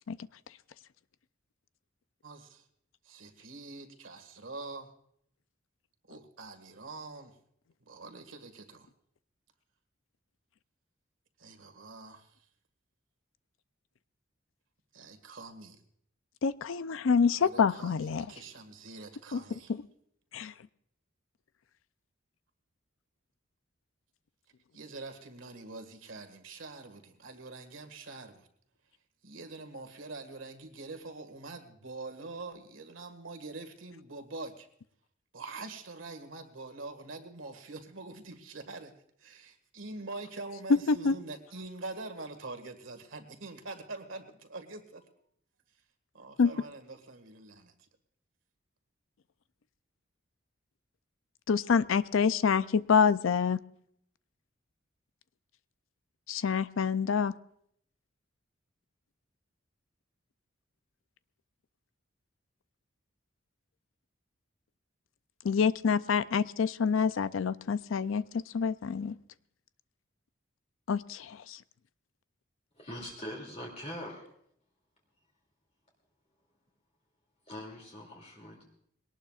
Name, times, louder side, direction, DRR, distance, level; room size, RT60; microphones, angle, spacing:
voice 1, 2.2-2.7 3.0-4.9 6.1-7.3 7.9-8.9 11.4-12.4 14.9-15.8 17.3-19.7 24.7-28.5 29.2-34.7 35.3-38.9 39.2-45.1 46.1-47.9, right 3 dB, 80° right, 7 dB, 1.8 m, -45 dB
voice 2, 16.4-18.3 19.3-19.4 19.7-19.8 20.3-20.5 40.9-41.2 46.4-46.5 51.5-53.6 56.3-57.3 65.4-69.2 70.9-71.6, left 6 dB, 80° left, 15 dB, 0.5 m, -27 dB
voice 3, 72.8-74.3 77.5-78.6, equal, 35° left, -1 dB, 2.7 m, -42 dB
22.0 x 18.5 x 2.4 m, 0.69 s
head